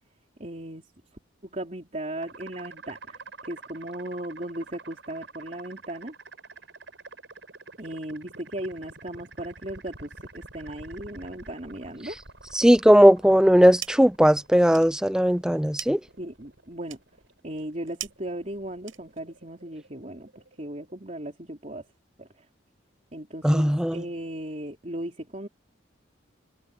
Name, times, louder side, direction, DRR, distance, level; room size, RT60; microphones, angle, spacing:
voice 1, 0.4-0.9 1.4-6.1 7.8-12.2 16.2-17.0 17.4-20.3 20.6-21.9 22.2-22.5 23.1-25.5, right 1 dB, 35° right, 3.4 m, -37 dB
sound 1, 2.2-20.9, right 3 dB, 65° right, 7.0 m, -48 dB
voice 2, 12.5-16.0 23.4-24.0, equal, 5° right, 0.5 m, -18 dB
sound 2, 13.3-14.2 14.5-19.4, right 13 dB, 85° right, 7.4 m, -43 dB
head